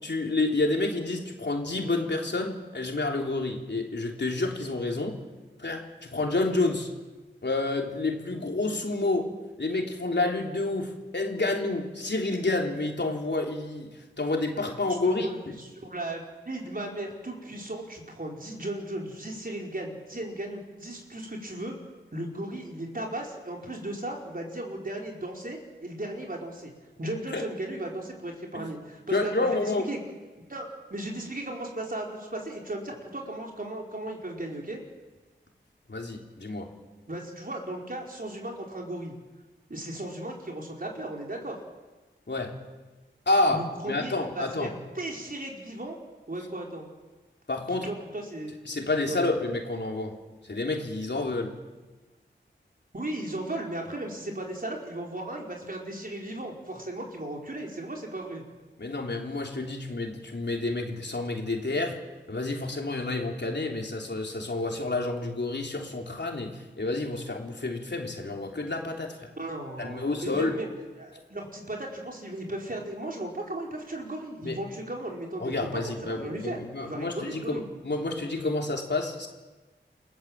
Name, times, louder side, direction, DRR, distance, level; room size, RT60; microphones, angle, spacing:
voice 1, 0.0-5.2 5.6-6.9 7.4-9.3 9.6-15.6 27.3-27.4 28.5-28.7 29.1-29.9 35.9-36.7 42.3-42.5 43.3-44.7 47.5-47.9 48.7-50.2 50.4-51.5 58.8-62.0 62.3-69.3 69.8-70.6 74.4-74.6 75.4-79.3, left 2 dB, 60° left, 1 dB, 3.5 m, -29 dB
voice 2, 15.0-21.7 22.1-26.7 27.0-30.0 30.5-34.8 37.1-39.1 39.7-41.6 43.5-46.0 46.3-46.9 47.8-48.5 49.1-49.3 52.9-58.4 69.4-75.6 76.0-77.6, right 1 dB, 45° right, 0 dB, 4.8 m, -36 dB
29.0 x 17.0 x 7.6 m, 1.2 s
wide cardioid pair, 75°, 20 cm